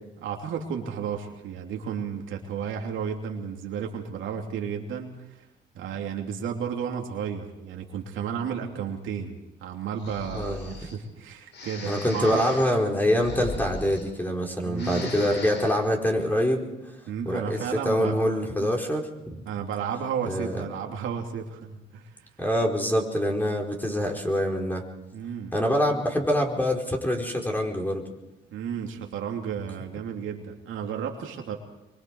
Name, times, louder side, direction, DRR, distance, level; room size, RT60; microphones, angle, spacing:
voice 1, 0.2-5.4 5.7-9.3 9.6-12.5 14.6-15.1 17.1-18.2 18.6-18.7 19.4-22.3 25.1-25.5 28.5-31.6, right 7 dB, 80° right, 2 dB, 2.9 m, -33 dB
Breathing, 9.9-11.0 11.5-14.4 14.7-15.9, left 3 dB, 60° left, 6.1 m, -39 dB
voice 2, 10.3-10.7 11.8-16.6 17.3-17.6 17.8-19.4 20.3-20.6 22.4-24.8 25.5-28.0, equal, 10° left, 1 dB, 4.5 m, -25 dB
24.0 x 23.5 x 4.7 m, 1.0 s
cardioid pair, 90°, 20 cm